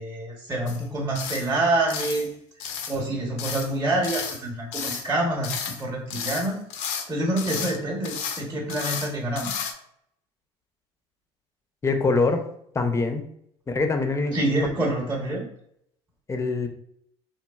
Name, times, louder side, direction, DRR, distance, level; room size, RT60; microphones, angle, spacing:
voice 1, 0.0-2.3 2.9-6.6 7.1-9.5 14.3-15.4, right 2 dB, 20° right, -1 dB, 0.8 m, -27 dB
sound 1, 0.7-0.8 1.2-1.5 1.9-2.3 2.6-3.0 3.4-3.7 4.0-4.4 4.7-5.1 5.4-5.8 6.1-7.1 7.4-7.8 8.0-8.4 8.7-9.1 9.4-9.7, left 7 dB, 70° left, 0.5 m, -32 dB
voice 2, 11.8-12.4 12.7-13.3 13.7-14.4 16.3-16.7, left 3 dB, 20° left, 6 dB, 0.5 m, -23 dB
3.1 x 2.3 x 2.3 m, 0.70 s
hypercardioid pair, 80°, 14 cm